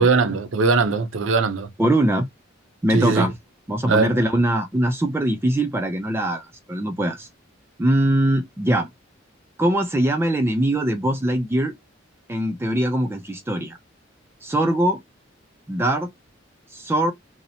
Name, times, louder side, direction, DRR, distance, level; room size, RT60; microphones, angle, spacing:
voice 1, 0.0-1.7 2.9-3.3 3.9-4.1, right 4 dB, 75° right, 0.5 m, -20 dB
voice 2, 1.8-2.3 2.8-3.3 3.7-7.3 7.8-8.9 9.6-11.7 12.3-13.8 14.4-15.0 15.7-16.1 16.7-17.1, right 1 dB, 10° right, 0.3 m, -22 dB
2.8 x 2.0 x 2.6 m
head